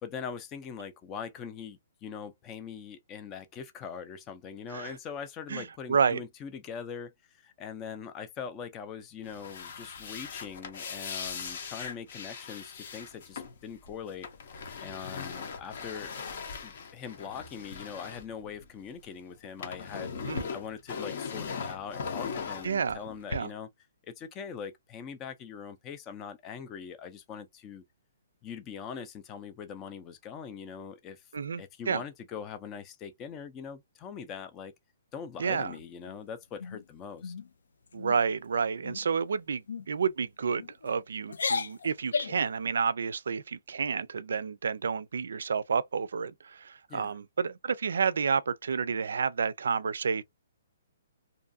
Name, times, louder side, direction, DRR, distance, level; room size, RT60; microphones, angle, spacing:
voice 1, 0.0-14.3 14.8-16.1 16.6-20.1 20.5-23.7 24.0-27.8 28.4-31.2 31.6-34.7 35.1-37.3 46.9-47.2, left 7 dB, 20° left, 0.4 m, -42 dB
voice 2, 5.5-6.2 20.2-20.4 22.6-23.0 23.3-23.5 31.3-32.0 35.4-35.7 37.9-50.2, right 6 dB, 80° right, 0.3 m, -30 dB
sound 1, 9.2-19.0 19.3-23.4, left 5 dB, 50° left, 0.7 m, -39 dB
sound 2, 35.5-36.2 36.6-36.8 37.2-37.5 37.9-38.2 38.8-39.2 39.7-39.9 40.6-40.9 41.3-42.5, left 5 dB, 90° left, 0.4 m, -35 dB
2.6 x 2.3 x 2.5 m
hypercardioid pair, 165°, 0 cm